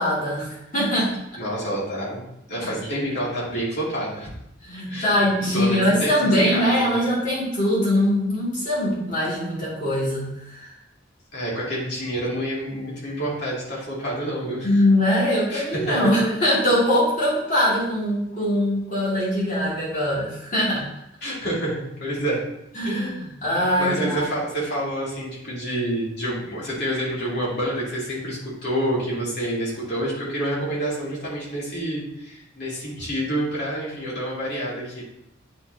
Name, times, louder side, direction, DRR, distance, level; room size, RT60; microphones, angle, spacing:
voice 1, 0.0-1.4 4.6-10.7 14.6-20.8 22.7-23.1 23.4-24.2, left 1 dB, 40° left, -8 dB, 2.5 m, -22 dB
voice 2, 1.4-4.3 4.9-5.1 5.5-7.0 11.3-14.8 15.5-16.1 19.9-20.0 21.2-22.4 22.8-23.2 23.5-35.0, right 1 dB, 60° left, -6 dB, 2.6 m, -28 dB
9.3 x 4.3 x 2.8 m, 0.80 s
head